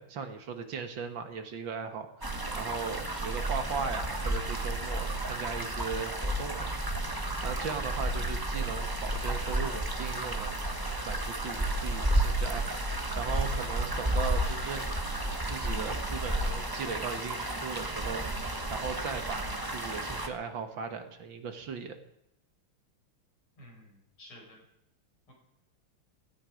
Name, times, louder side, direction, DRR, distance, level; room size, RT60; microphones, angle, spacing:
voice 1, 0.0-2.3 2.6-6.7 7.4-10.6 11.0-12.8 13.2-15.0 15.5-18.3 18.7-22.0, right 6 dB, 60° right, 7 dB, 2.0 m, -38 dB
sound 1, 2.2-20.3, right 1 dB, 15° right, 0.9 m, -32 dB
voice 2, 23.6-24.6 25.3-25.4, left 1 dB, 75° left, -1 dB, 6.6 m, -52 dB
16.5 x 15.0 x 5.1 m, 0.81 s
omnidirectional pair, 2.4 m